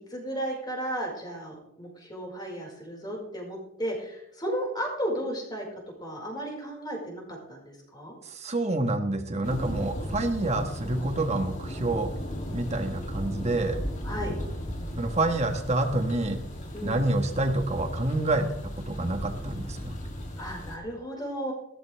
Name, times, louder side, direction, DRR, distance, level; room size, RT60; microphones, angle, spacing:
voice 1, 0.0-5.6 6.0-7.2 7.5-8.1 14.0-14.3 16.7-16.9 20.4-21.5, equal, 20° left, -2 dB, 5.1 m, -34 dB
voice 2, 8.2-12.1 12.5-13.8 15.0-16.4 16.8-18.5 18.9-19.9, right 2 dB, 30° right, 6 dB, 1.5 m, -27 dB
Thunder, 9.4-20.8, equal, 35° left, 2.8 m, -36 dB
16.5 x 14.0 x 3.5 m, 0.77 s
head